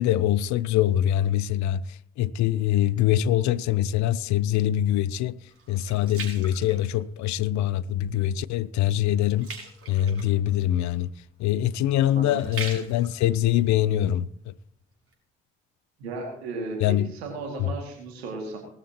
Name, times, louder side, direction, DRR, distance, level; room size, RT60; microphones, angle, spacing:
voice 1, 0.0-5.4 5.7-9.5 9.9-11.1 11.4-14.5 16.8-17.1 17.6-17.7, left 12 dB, 65° left, 0.7 m, -24 dB
sound 1, 4.2-7.5 8.0-8.3 8.6-14.6 15.1-15.2, right 4 dB, 45° right, 5.9 m, -42 dB
voice 2, 11.9-12.4 16.0-18.6, right 3 dB, 85° right, 2.3 m, -35 dB
18.5 x 13.5 x 2.9 m
hypercardioid pair, 40°, 31 cm